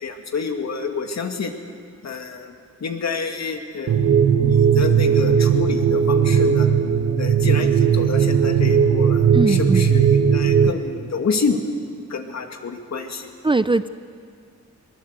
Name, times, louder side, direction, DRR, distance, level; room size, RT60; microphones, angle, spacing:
voice 1, 0.0-1.5 2.0-2.5 2.8-4.1 4.4-6.7 7.2-11.6 12.1-13.3, left 5 dB, 65° left, 4 dB, 2.2 m, -28 dB
sound 1, 3.9-10.7, right 7 dB, 70° right, 1.4 m, -17 dB
voice 2, 9.3-9.9 13.4-13.9, right 3 dB, 20° right, 13 dB, 0.5 m, -20 dB
21.5 x 20.0 x 8.1 m, 2.2 s
wide cardioid pair, 115°, 29 cm